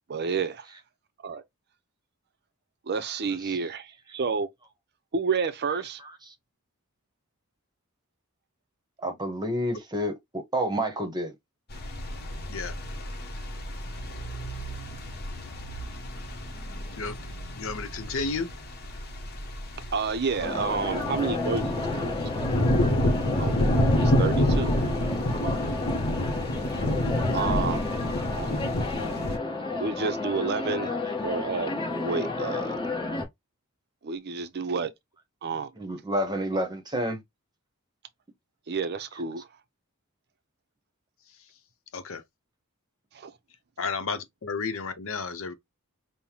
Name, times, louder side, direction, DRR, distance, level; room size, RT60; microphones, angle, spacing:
voice 1, 0.1-0.7 1.2-1.4 2.9-4.5 5.1-6.0 19.9-21.6 21.9-22.2 23.4-23.6 24.0-24.7 27.3-27.8 28.4-28.5 29.8-30.9 31.2-31.7 32.0-32.8 34.0-34.9 35.4-35.7 38.7-39.5 43.1-43.3, right 5 dB, 50° right, 0.5 m, -29 dB
voice 2, 9.0-11.3 31.0-31.1 35.8-37.2, equal, 20° right, 1.0 m, -29 dB
sound 1, 11.7-29.4, left 1 dB, 45° left, 1.0 m, -29 dB
voice 3, 17.6-18.5 41.9-42.2 43.8-45.5, left 4 dB, 65° left, 0.8 m, -32 dB
sound 2, 20.4-33.2, left 3 dB, 20° left, 1.1 m, -31 dB
5.4 x 2.1 x 2.9 m
head